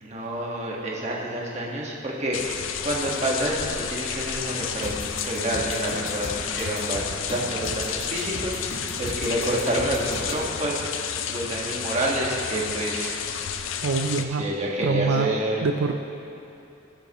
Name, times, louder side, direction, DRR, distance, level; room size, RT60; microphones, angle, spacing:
voice 1, 0.0-2.4 2.8-7.0 7.3-8.6 9.0-13.2 14.4-15.6, right 1 dB, 35° right, -3 dB, 1.5 m, -28 dB
sound 1, 2.3-14.2, left 8 dB, 85° left, 0.5 m, -31 dB
sound 2, 4.8-10.5, equal, 70° left, 1.8 m, -36 dB
voice 2, 13.8-14.4 14.8-15.3 15.6-16.0, right 5 dB, 85° right, 5 dB, 0.5 m, -24 dB
19.0 x 7.0 x 3.0 m, 2.8 s
head